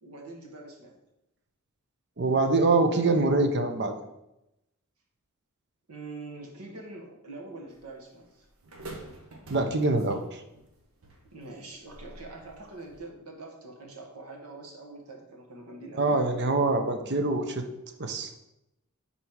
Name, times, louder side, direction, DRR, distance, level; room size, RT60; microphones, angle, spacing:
voice 1, 0.0-0.9 5.9-8.5 11.3-16.2, right 2 dB, 85° right, 0 dB, 1.3 m, -44 dB
voice 2, 2.2-4.0 9.5-10.4 16.0-17.6 18.0-18.3, right 3 dB, 50° right, 6 dB, 0.7 m, -24 dB
sound 1, 7.7-13.1, right 1 dB, 70° right, 1.0 m, -48 dB
5.5 x 4.2 x 4.5 m, 0.89 s
head